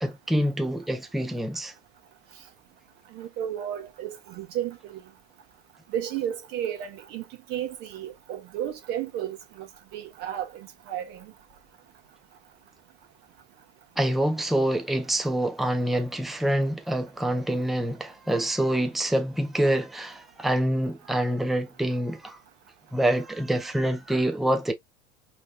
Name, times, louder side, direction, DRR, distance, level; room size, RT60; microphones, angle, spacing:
voice 1, 0.0-1.7 14.0-22.4 22.9-24.7, right 1 dB, ahead, 0.6 m, -26 dB
voice 2, 3.1-5.0 5.9-7.2 7.5-9.7 9.9-11.2, right 10 dB, 55° right, 1.4 m, -33 dB
5.4 x 3.2 x 2.4 m
cardioid pair, 160°, 20 cm